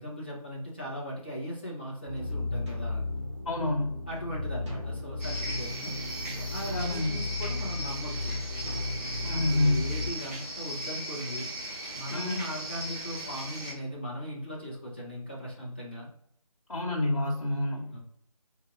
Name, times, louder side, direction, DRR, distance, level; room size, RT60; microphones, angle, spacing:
voice 1, 0.0-3.0 4.1-6.0 6.3-8.3 9.3-11.5 11.9-16.1 17.9-18.0, equal, 15° left, -6 dB, 0.7 m, -38 dB
sound 1, 2.0-10.1, left 2 dB, 50° right, 1.5 m, -35 dB
voice 2, 3.4-4.0 6.7-7.2 9.2-9.9 12.1-12.5 16.7-18.0, left 2 dB, 55° left, -3 dB, 1.3 m, -28 dB
sound 2, 5.2-13.7, right 1 dB, 25° right, 1.6 m, -38 dB
3.7 x 2.7 x 3.8 m, 0.68 s
figure-of-eight pair, 170°, 20 cm